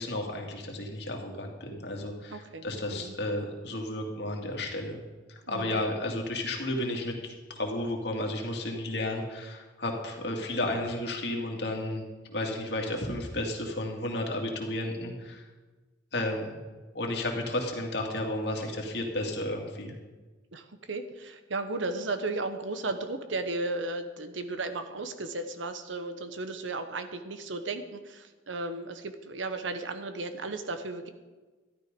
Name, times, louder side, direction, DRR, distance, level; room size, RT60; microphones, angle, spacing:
voice 1, 0.0-5.0 5.5-12.0 12.3-15.4 16.1-16.6 16.9-19.9, left 1 dB, 60° left, 1 dB, 2.3 m, -32 dB
voice 2, 2.3-3.2 5.5-5.8 20.5-31.1, right 2 dB, 85° right, 9 dB, 1.1 m, -35 dB
13.0 x 11.5 x 5.3 m, 1.3 s
head